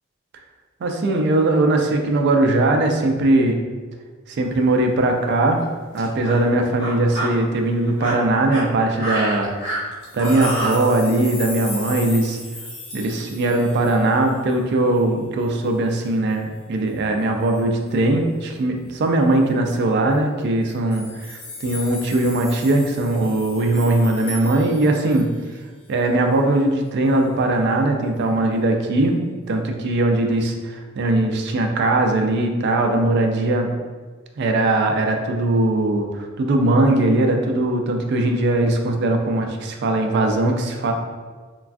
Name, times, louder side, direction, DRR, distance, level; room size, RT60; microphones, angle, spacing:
voice 1, 0.8-3.6 4.3-5.6 5.9-9.5 10.1-12.4 12.9-25.3 25.9-29.2 29.5-33.7 34.4-40.9, right 2 dB, 55° right, 3 dB, 0.3 m, -20 dB
sound 1, 4.4-4.7 5.5-5.6 6.0-6.4 6.8-7.3 7.8-10.7, right 1 dB, 55° left, 1.1 m, -28 dB
sound 2, 10.0-14.5 14.9-15.0 15.4-15.5 15.8-16.3 17.4-17.6 19.3-19.4 19.7-19.8 20.6-25.5 26.0-26.1, left 3 dB, 85° left, 0.8 m, -37 dB
3.2 x 2.2 x 2.4 m, 1.5 s
head